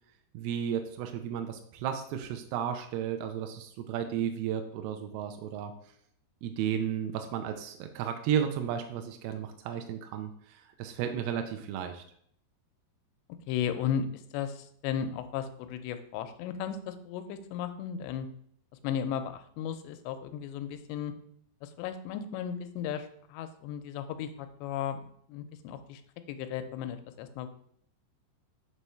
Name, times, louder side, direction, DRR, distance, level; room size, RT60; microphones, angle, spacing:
voice 1, 0.3-5.7 6.4-12.0, right 9 dB, 80° right, 5 dB, 2.3 m, -33 dB
voice 2, 13.5-18.3 18.7-21.1 21.6-26.0 26.3-27.5, left 8 dB, 90° left, 9 dB, 2.8 m, -35 dB
6.8 x 3.1 x 5.5 m, 0.66 s
omnidirectional pair, 5.0 m